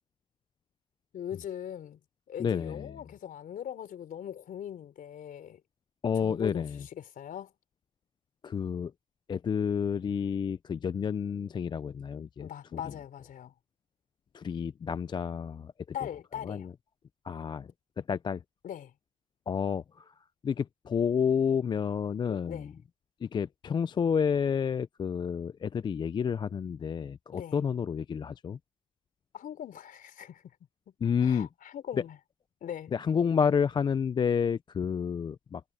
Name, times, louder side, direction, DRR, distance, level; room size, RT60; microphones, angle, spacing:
voice 1, 1.1-2.0 2.3-5.6 6.2-7.5 12.4-13.5 15.9-16.7 18.6-18.9 22.3-22.7 27.3-27.6 29.3-30.4 31.2-32.2 32.6-32.9, left 10 dB, 55° left, 3.8 m, -40 dB
voice 2, 2.4-2.9 6.0-6.8 8.4-8.9 9.3-12.8 14.3-15.7 16.4-16.7 17.3-17.7 18.0-18.4 19.5-20.0 20.4-22.7 23.2-28.6 31.0-31.5 32.9-35.6, left 7 dB, 25° left, 0.4 m, -30 dB
cardioid pair, 110°, 17 cm